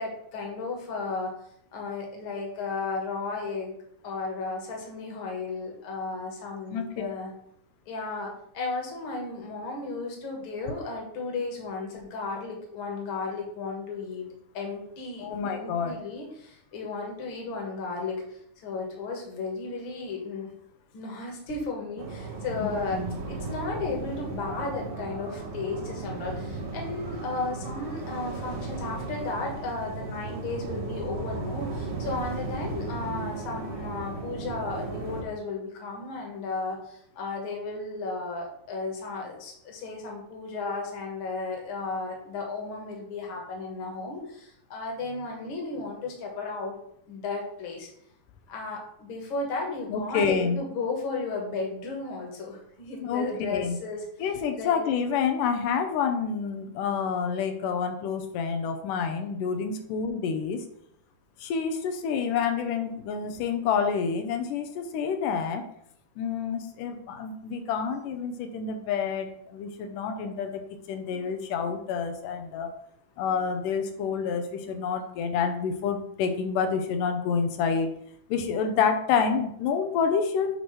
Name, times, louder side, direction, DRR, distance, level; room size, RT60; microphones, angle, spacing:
voice 1, 0.0-1.3 1.7-3.8 4.0-7.3 7.9-14.3 14.5-20.5 20.9-23.0 23.3-46.7 47.1-47.9 48.5-54.0 54.5-54.8, left 3 dB, 45° left, 0 dB, 2.0 m, -34 dB
voice 2, 6.7-7.1 15.2-16.0 22.6-23.1 49.9-50.6 53.0-53.8 54.2-60.6 61.4-65.6 66.2-70.6 70.9-72.7 73.2-77.9 78.3-80.5, left 6 dB, 85° left, 6 dB, 2.3 m, -28 dB
sound 1, 22.0-35.2, right 3 dB, 60° right, 2.3 m, -35 dB
8.3 x 3.1 x 5.8 m, 0.70 s
omnidirectional pair, 3.7 m